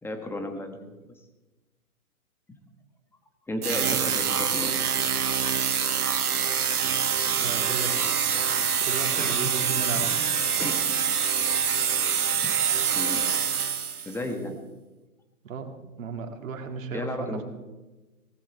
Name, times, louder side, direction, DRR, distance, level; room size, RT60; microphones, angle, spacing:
voice 1, 0.0-0.9 3.5-4.7 6.8-6.9 9.2-9.5 9.9-10.1 10.6-10.8 12.9-13.2 14.0-14.6 16.9-17.4, left 1 dB, 5° left, 5 dB, 1.5 m, -33 dB
sound 1, 3.6-14.2, right 7 dB, 80° right, 1.4 m, -25 dB
voice 2, 7.3-10.1 15.4-15.7 16.0-17.4, right 5 dB, 60° right, 5 dB, 2.5 m, -35 dB
18.0 x 14.5 x 4.6 m, 1.1 s
hypercardioid pair, 130°, 44 cm